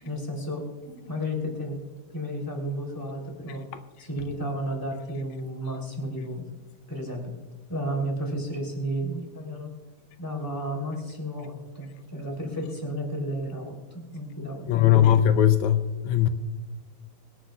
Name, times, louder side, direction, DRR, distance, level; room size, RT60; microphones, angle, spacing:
voice 1, 0.0-1.8 2.1-3.6 4.0-6.4 6.9-7.3 7.7-9.7 10.2-14.6, equal, 5° left, 2 dB, 2.9 m, -32 dB
voice 2, 14.7-16.3, left 11 dB, 80° left, 9 dB, 2.0 m, -19 dB
24.5 x 11.5 x 2.3 m, 1.3 s
omnidirectional pair, 3.3 m